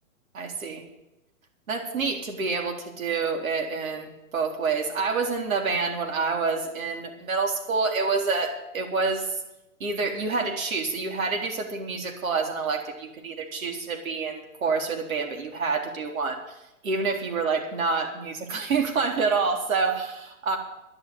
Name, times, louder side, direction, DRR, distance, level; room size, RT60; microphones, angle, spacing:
voice 1, 0.3-0.8 1.7-9.4 9.8-16.4 16.8-20.6, right 4 dB, 70° right, 3 dB, 3.7 m, -27 dB
11.0 x 10.5 x 9.0 m, 0.91 s
hypercardioid pair, 155°, 43 cm